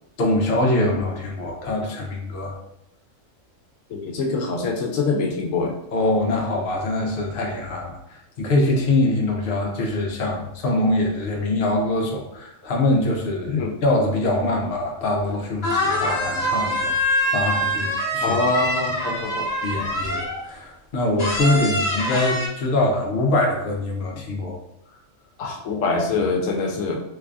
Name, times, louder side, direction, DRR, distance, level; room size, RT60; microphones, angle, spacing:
voice 1, 0.2-2.5 5.9-18.4 19.6-24.6, left 2 dB, 55° left, 0 dB, 0.8 m, -23 dB
voice 2, 3.9-5.7 13.5-13.7 18.2-19.5 25.4-27.0, left 3 dB, 80° left, 2 dB, 0.9 m, -24 dB
sound 1, 15.3-15.4 15.6-20.5 21.2-22.5, equal, 35° left, 1.1 m, -24 dB
3.5 x 3.2 x 2.4 m, 0.81 s
omnidirectional pair, 1.4 m